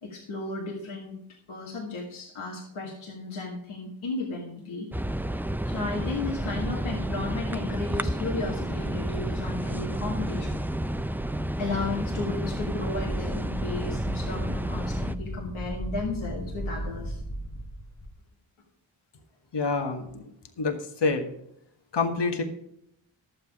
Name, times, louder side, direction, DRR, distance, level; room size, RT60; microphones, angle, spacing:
voice 1, 0.0-1.2 1.5-4.9 5.6-10.6 11.6-17.2, left 3 dB, 85° left, -1 dB, 1.8 m, -34 dB
sound 1, 4.9-15.2, right 1 dB, 5° right, 0.5 m, -31 dB
Wind, 12.5-18.1, equal, 30° left, 1.5 m, -36 dB
voice 2, 19.5-20.2 20.6-21.3 21.9-22.4, left 4 dB, 60° left, 5 dB, 1.5 m, -27 dB
11.0 x 7.9 x 4.8 m, 0.77 s
cardioid pair, 45°, 47 cm